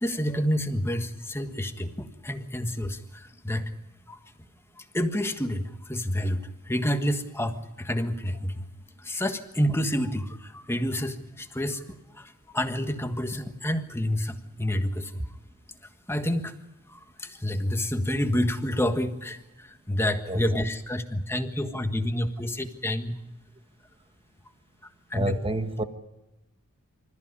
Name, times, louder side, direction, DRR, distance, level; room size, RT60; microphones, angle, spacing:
voice 1, 0.0-3.7 4.1-4.2 4.8-8.7 9.0-15.2 16.1-16.5 16.9-23.1 25.1-25.4, equal, 10° left, 1.5 m, -29 dB
voice 2, 25.1-25.8, right 1 dB, 25° right, 1.3 m, -28 dB
26.5 x 14.0 x 9.8 m
head